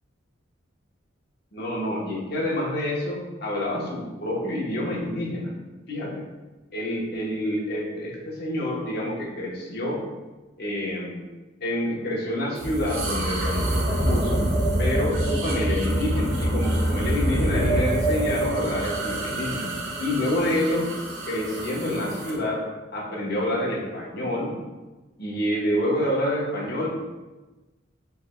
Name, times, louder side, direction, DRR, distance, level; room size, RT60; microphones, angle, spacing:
voice 1, 1.5-5.5 5.9-6.2 6.7-10.0 10.6-11.3 11.6-14.4 14.8-19.7 20.0-20.9 21.3-22.6 22.9-24.5 25.2-26.9, left 1 dB, 55° left, -3 dB, 1.1 m, -28 dB
sound 1, 12.6-22.4, right 1 dB, 75° right, 1.0 m, -26 dB
6.7 x 3.4 x 2.3 m, 1.2 s
head